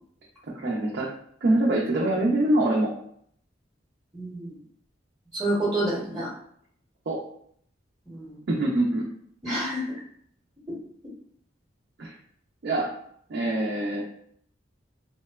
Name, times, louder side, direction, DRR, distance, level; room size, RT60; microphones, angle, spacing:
voice 1, 0.5-1.1 1.4-2.9 7.1-7.2 8.5-9.1 12.0-12.1 12.6-12.9 13.3-14.0, right 1 dB, 60° right, -4 dB, 0.4 m, -24 dB
voice 2, 4.1-4.5 5.3-6.3 8.1-8.4 9.4-9.9, right 1 dB, 15° right, -9 dB, 0.7 m, -28 dB
2.9 x 2.0 x 2.2 m, 0.66 s
head